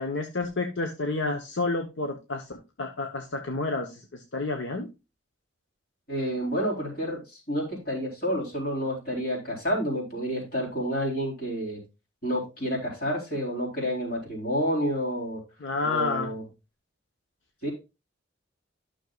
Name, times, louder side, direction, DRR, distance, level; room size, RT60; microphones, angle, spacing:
voice 1, 0.0-4.9 15.6-16.3, left 3 dB, 75° left, 4 dB, 1.0 m, -30 dB
voice 2, 6.1-11.8 12.2-15.4 15.8-16.4 17.6-17.7, equal, 50° left, -2 dB, 3.7 m, -29 dB
12.5 x 6.4 x 2.3 m, 0.27 s
head